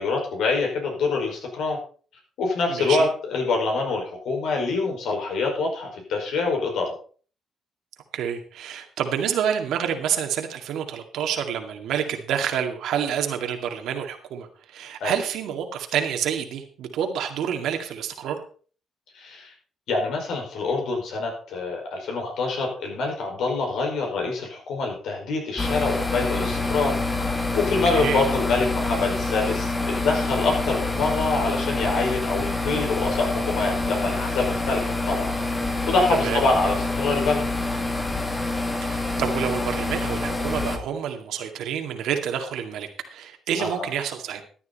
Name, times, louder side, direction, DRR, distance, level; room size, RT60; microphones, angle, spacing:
voice 1, 0.0-1.8 2.4-7.0 15.0-15.2 19.2-19.5 19.9-35.3 35.8-37.4 43.6-43.9, left 3 dB, 80° left, 1 dB, 5.3 m, -25 dB
voice 2, 2.7-3.1 8.1-18.4 27.9-28.2 36.1-36.4 38.8-44.4, right 8 dB, 80° right, 5 dB, 2.1 m, -28 dB
sound 1, 25.6-40.8, left 2 dB, 15° left, 2.1 m, -26 dB
13.5 x 9.7 x 4.2 m, 0.41 s
cardioid pair, 90°, 0 cm